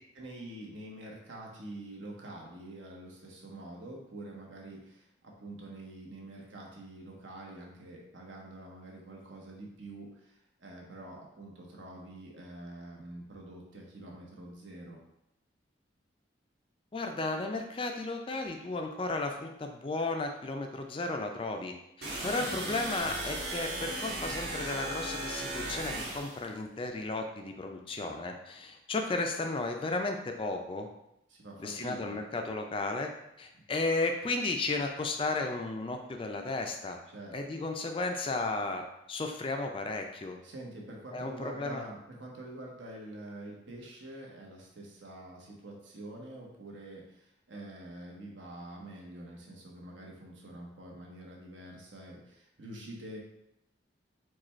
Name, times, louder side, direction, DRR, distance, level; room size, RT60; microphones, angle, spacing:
voice 1, 0.1-15.0 31.3-32.2 37.1-37.4 40.4-53.2, right 1 dB, 75° right, -1 dB, 1.0 m, -46 dB
voice 2, 16.9-30.9 31.6-33.1 33.4-37.0 37.3-38.8 39.1-40.4 41.1-41.8, left 3 dB, 25° left, 4 dB, 0.3 m, -34 dB
sound 1, 22.0-26.4, right 2 dB, 55° right, 1.3 m, -36 dB
4.9 x 2.3 x 4.3 m, 0.83 s
head